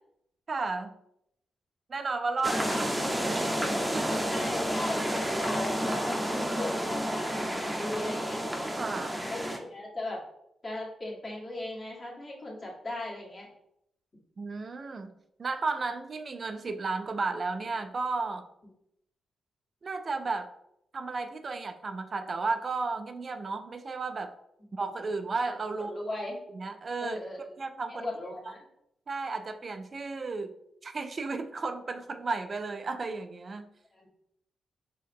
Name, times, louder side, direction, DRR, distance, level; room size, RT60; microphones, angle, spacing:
voice 1, 0.5-0.9 1.9-3.5 3.9-4.3 8.8-9.2 14.4-15.1 15.4-18.4 19.8-20.5 20.9-24.3 24.7-25.9 26.5-28.1 29.1-30.5 30.8-33.6, right 3 dB, 45° right, 8 dB, 0.3 m, -33 dB
sound 1, 2.4-9.6, equal, 5° right, 0.7 m, -30 dB
voice 2, 4.3-7.4 7.8-8.4 9.3-10.2 10.6-13.5 25.7-26.4 27.0-27.4 27.9-28.6 34.0-34.1, left 1 dB, 35° left, -3 dB, 1.6 m, -37 dB
4.5 x 3.0 x 3.5 m, 0.78 s
cardioid pair, 80°, 0 cm